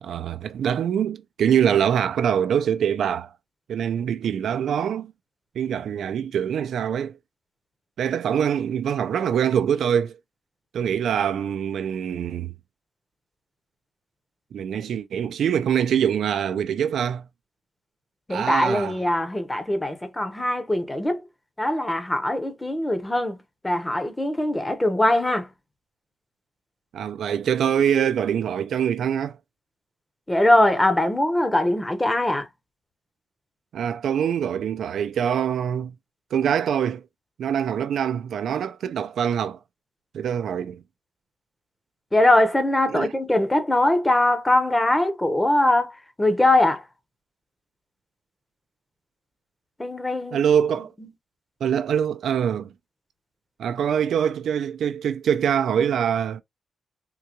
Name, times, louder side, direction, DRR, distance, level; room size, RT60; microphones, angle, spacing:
voice 1, 0.0-3.3 3.7-5.1 5.6-7.2 8.0-10.2 10.7-12.5 14.5-17.3 18.3-19.0 26.9-29.4 33.7-36.0 36.3-37.0 37.4-39.6 40.1-40.8 42.9-43.1 50.3-50.9 51.6-52.7 53.6-56.4, right 8 dB, 85° right, 0.4 m, -24 dB
voice 2, 18.3-21.2 21.6-23.4 23.6-25.5 30.3-32.5 42.1-45.9 46.2-46.8 49.8-50.4, left 1 dB, 15° left, 0.8 m, -21 dB
3.7 x 2.3 x 3.0 m
cardioid pair, 95°, 0 cm